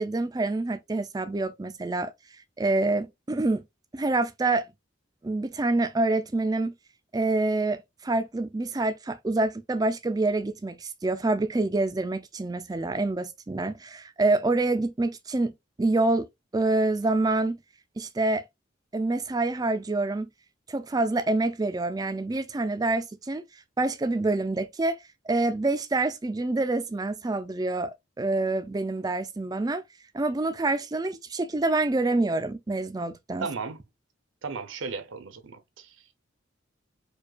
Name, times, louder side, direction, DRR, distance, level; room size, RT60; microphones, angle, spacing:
voice 1, 0.0-2.1 2.6-3.6 3.9-4.7 5.2-6.7 7.1-15.5 15.8-16.3 16.5-17.6 18.0-18.4 18.9-20.3 20.7-23.4 23.8-25.0 25.3-29.8 30.1-33.5, right 2 dB, 20° right, 0.3 m, -26 dB
voice 2, 33.4-33.8 34.4-36.2, right 4 dB, 80° right, 0.6 m, -36 dB
4.9 x 2.2 x 2.3 m
head